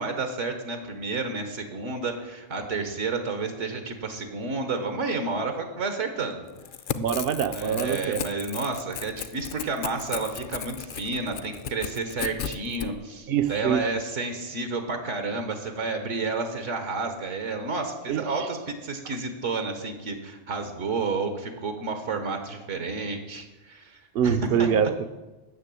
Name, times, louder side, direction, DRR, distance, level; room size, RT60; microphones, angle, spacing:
voice 1, 0.0-6.4 7.5-24.7, right 3 dB, 80° right, 6 dB, 1.5 m, -31 dB
Crackle / Tearing, 6.5-12.9, left 8 dB, 55° left, 0.6 m, -35 dB
voice 2, 7.0-8.3 13.3-13.8 18.1-18.5 24.1-25.1, right 8 dB, 60° right, 12 dB, 0.8 m, -25 dB
9.6 x 6.8 x 8.4 m, 1.1 s
omnidirectional pair, 1.2 m